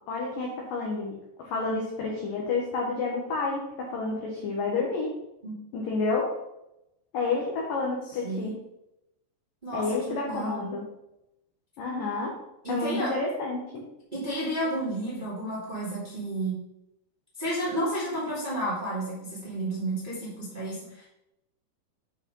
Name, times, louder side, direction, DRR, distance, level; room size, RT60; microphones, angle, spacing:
voice 1, 0.1-5.1 5.7-6.3 7.1-8.5 9.7-10.8 11.8-12.4 12.7-13.8, left 3 dB, 75° left, -2 dB, 2.0 m, -30 dB
voice 2, 8.2-8.5 9.6-10.6 12.6-13.1 14.1-16.6 17.4-21.0, right 1 dB, 15° right, -7 dB, 1.5 m, -31 dB
8.8 x 4.8 x 5.4 m, 0.88 s
omnidirectional pair, 5.8 m